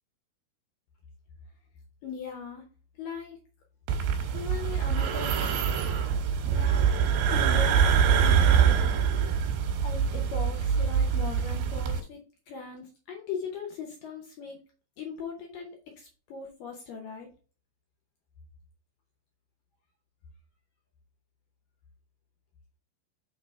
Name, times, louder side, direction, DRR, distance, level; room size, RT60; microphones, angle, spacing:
voice 1, 2.0-2.6 3.0-3.4 4.3-5.5 5.8-6.2 6.4-9.0 9.8-12.2 12.5-14.6 15.0-17.3, left 5 dB, 70° left, 1 dB, 2.2 m, -39 dB
sound 1, 3.9-12.0, right 7 dB, 75° right, 3.0 m, -24 dB
6.1 x 3.9 x 4.4 m, 0.37 s
omnidirectional pair, 5.0 m